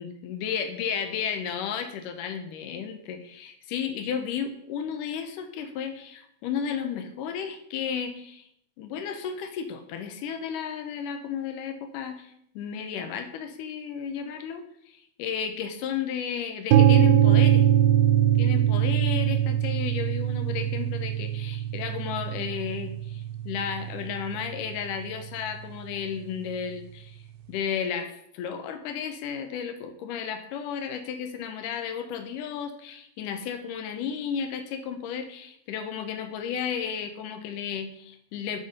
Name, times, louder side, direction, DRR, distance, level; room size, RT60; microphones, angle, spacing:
voice 1, 0.0-8.4 8.8-17.7 18.4-27.2 27.5-38.6, left 7 dB, 85° left, 7 dB, 1.9 m, -33 dB
sound 1, 16.7-24.6, right 10 dB, 80° right, 2.3 m, -22 dB
11.5 x 4.1 x 5.1 m, 0.72 s
omnidirectional pair, 4.5 m